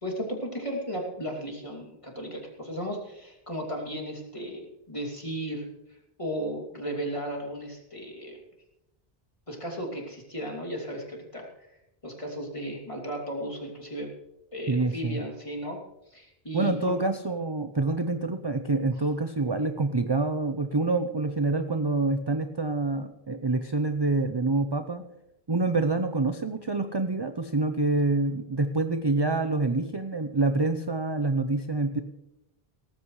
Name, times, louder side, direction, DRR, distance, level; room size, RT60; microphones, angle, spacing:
voice 1, 0.0-8.4 9.5-14.1 14.5-15.8 16.1-17.0, equal, 30° left, -1 dB, 2.8 m, -35 dB
voice 2, 14.7-15.2 16.5-25.0 25.5-32.0, right 3 dB, 30° right, 8 dB, 0.6 m, -26 dB
18.0 x 14.5 x 3.2 m, 0.88 s
omnidirectional pair, 1.0 m